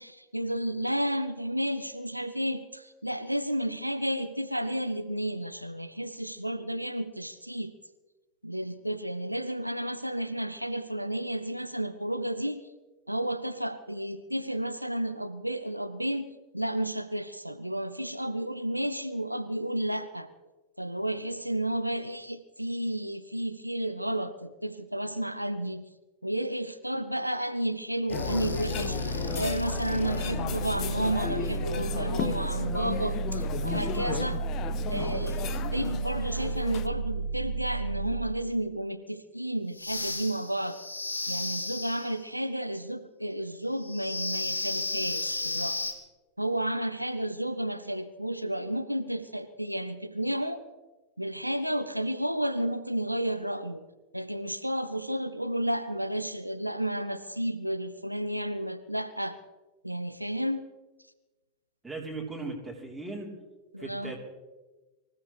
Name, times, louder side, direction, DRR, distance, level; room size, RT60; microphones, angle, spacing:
voice 1, 0.0-7.7 8.4-12.6 13.1-16.3 16.5-20.3 20.8-25.8 26.2-34.4 34.9-40.8 41.3-45.8 46.4-50.6 51.2-53.8 54.1-59.4 59.8-60.6 63.7-64.1, right 1 dB, 90° right, 10 dB, 0.6 m, -32 dB
sound 1, 28.1-38.5 39.7-42.2 43.8-45.9, right 1 dB, 80° left, 1.3 m, -33 dB
sound 2, 28.1-36.9, left 10 dB, 35° left, 0.8 m, -35 dB
voice 2, 61.8-63.3 63.8-64.2, right 3 dB, 5° right, -1 dB, 3.6 m, -37 dB
24.0 x 15.0 x 3.3 m, 1.2 s
figure-of-eight pair, 90°, 0 cm